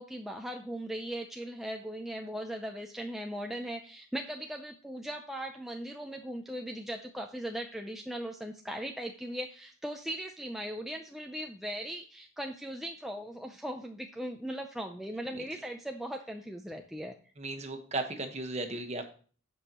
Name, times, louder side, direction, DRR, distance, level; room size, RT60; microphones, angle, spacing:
voice 1, 0.0-17.1, right 1 dB, ahead, 2 dB, 0.5 m, -39 dB
voice 2, 17.4-19.1, right 2 dB, 30° right, 6 dB, 1.3 m, -35 dB
16.0 x 5.5 x 3.0 m, 0.40 s
head